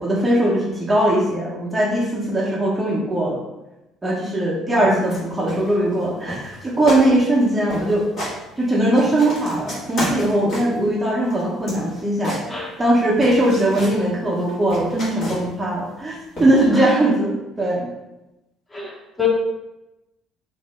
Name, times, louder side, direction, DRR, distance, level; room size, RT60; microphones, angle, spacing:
voice 1, 0.0-3.4 4.0-8.1 8.6-17.9, right 1 dB, 15° right, -4 dB, 0.8 m, -20 dB
sound 1, 5.0-5.2 5.5-6.0 6.3-6.6 6.9-7.1 7.3-7.4 7.7-8.4 8.8-10.8 11.3-12.9 13.2-14.0 14.4-15.6 16.4-16.6, equal, 45° left, 1.4 m, -31 dB
voice 2, 18.7-19.3, left 8 dB, 15° left, -3 dB, 1.0 m, -28 dB
2.8 x 2.0 x 3.3 m, 0.96 s
hypercardioid pair, 55°, 0 cm